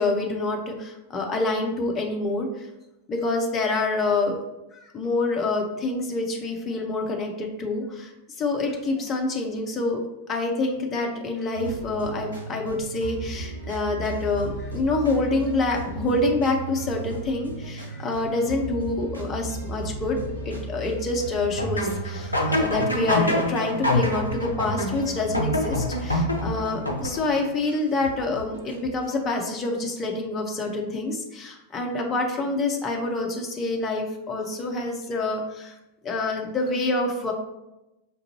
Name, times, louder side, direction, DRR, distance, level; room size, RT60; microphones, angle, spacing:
voice 1, 0.0-2.7 3.1-4.4 4.8-8.1 8.4-10.0 10.3-35.7 36.0-37.3, left 2 dB, 25° left, 1 dB, 0.6 m, -27 dB
sound 1, 11.5-29.1, right 3 dB, 85° right, 0.6 m, -37 dB
sound 2, 21.6-27.5, left 1 dB, 85° left, 0.5 m, -26 dB
5.3 x 2.5 x 2.9 m, 0.94 s
figure-of-eight pair, 90°, 0 cm